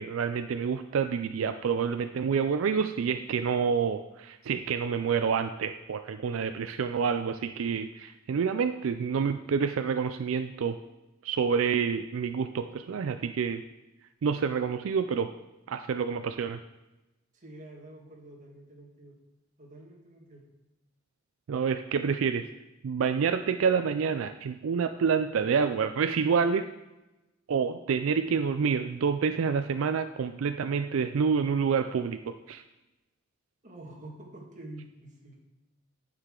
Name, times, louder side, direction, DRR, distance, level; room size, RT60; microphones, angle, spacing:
voice 1, 0.0-10.8 11.2-13.6 14.2-15.3 15.7-16.6 21.5-22.5 22.8-26.7 27.5-32.6, right 6 dB, 80° right, 9 dB, 0.4 m, -28 dB
voice 2, 17.3-19.1 19.6-20.4 33.6-35.4, right 1 dB, 40° right, -1 dB, 1.8 m, -47 dB
9.7 x 6.6 x 3.7 m, 0.99 s
head